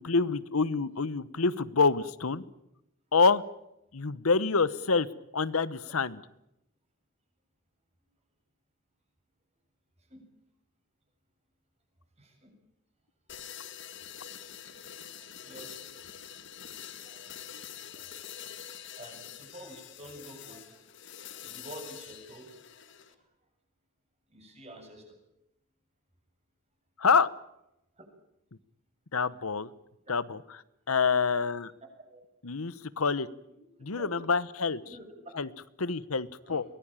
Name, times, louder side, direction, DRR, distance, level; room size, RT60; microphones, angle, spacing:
voice 1, 0.0-2.4 3.1-3.4 3.9-5.1 5.3-6.2 27.0-27.3 29.1-29.7 30.1-30.4 30.9-31.7 32.4-33.3 33.8-34.8 35.4-35.5 35.8-36.6, left 4 dB, 90° left, 17 dB, 1.0 m, -26 dB
voice 2, 12.2-12.5 15.2-15.7 17.0-17.4 17.9-18.4 19.0-20.9 21.3-22.5 22.9-23.2 24.3-25.2 30.1-30.2 31.0-31.1 32.0-32.2 33.9-34.2 34.8-35.1 36.4-36.6, right 1 dB, 30° right, 3 dB, 7.2 m, -49 dB
sound 1, 13.3-23.1, left 9 dB, 60° left, 1.8 m, -46 dB
23.5 x 19.5 x 9.0 m, 0.84 s
head